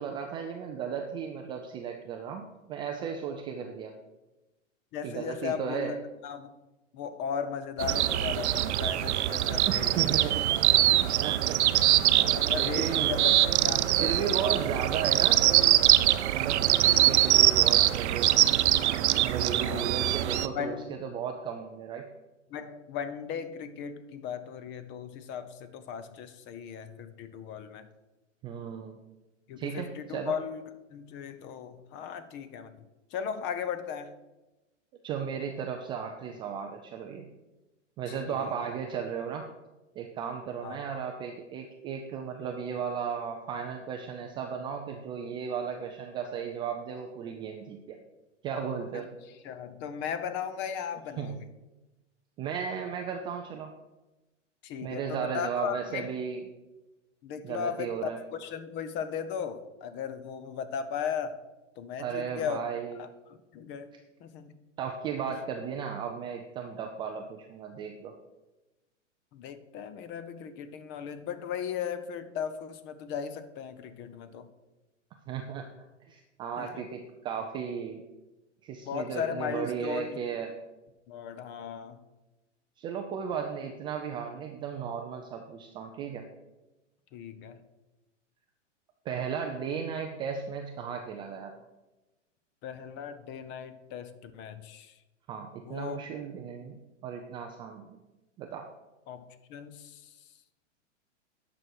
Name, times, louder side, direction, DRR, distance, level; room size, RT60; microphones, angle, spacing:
voice 1, 0.0-3.9 5.0-5.9 9.6-10.9 11.2-12.1 12.5-13.1 14.0-15.5 16.3-18.3 19.2-22.1 28.4-29.0 29.6-30.3 35.0-37.3 38.0-39.5 40.0-48.0 48.4-49.1 51.2-51.5 52.4-53.7 54.8-56.4 57.4-58.2 62.0-63.0 64.8-68.1 75.3-75.6 76.1-78.0 78.6-80.5 82.8-86.2 89.1-91.5 95.3-98.0 98.4-98.7, right 7 dB, 15° right, 3 dB, 0.3 m, -35 dB
voice 2, 4.9-6.0 6.2-6.5 6.9-10.0 10.8-11.1 12.3-14.5 19.5-19.8 20.5-20.9 22.5-27.9 29.5-30.6 30.9-32.7 33.1-34.1 38.1-38.5 40.6-40.8 48.9-49.1 49.4-51.4 54.6-56.1 57.2-61.4 61.8-62.6 63.0-63.1 63.5-63.9 64.2-64.5 69.3-74.5 76.6-76.8 78.8-80.2 81.1-82.0 87.1-87.6 92.6-94.9 95.6-96.0 99.1-99.2 99.5-100.1, left 7 dB, 30° left, 12 dB, 0.8 m, -37 dB
sound 1, 7.8-20.5, right 13 dB, 65° right, 0.6 m, -23 dB
9.5 x 6.1 x 6.3 m, 1.1 s
hypercardioid pair, 130°, 37 cm